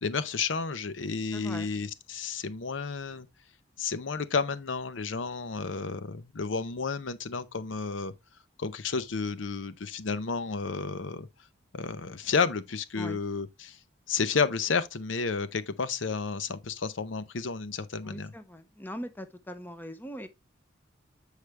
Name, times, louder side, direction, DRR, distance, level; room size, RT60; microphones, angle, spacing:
voice 1, 0.0-3.3 3.8-8.1 8.6-11.3 11.7-13.8 14.1-18.3, left 5 dB, 75° left, 0.7 m, -31 dB
voice 2, 1.3-1.7 13.0-13.2 18.0-20.3, equal, 10° left, 0.8 m, -41 dB
8.0 x 5.0 x 3.2 m
head